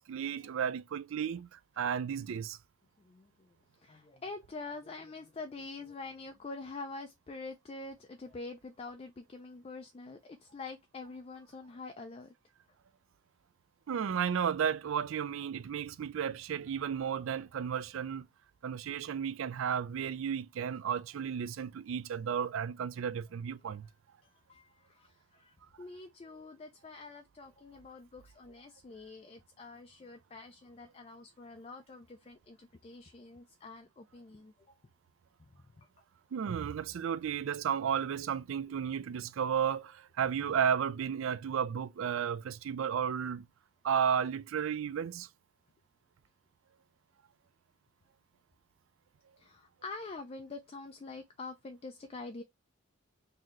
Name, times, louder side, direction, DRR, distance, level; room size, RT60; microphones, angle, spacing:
voice 1, 0.0-2.6 13.9-18.3 18.6-23.9 36.3-43.4 43.8-45.3, right 8 dB, 65° right, 0.3 m, -33 dB
voice 2, 3.0-3.5 3.8-12.3 23.8-23.9 24.2-34.5 35.4-35.5 35.8-35.9 49.4-52.4, left 3 dB, 25° left, 0.3 m, -46 dB
4.0 x 2.7 x 3.0 m
head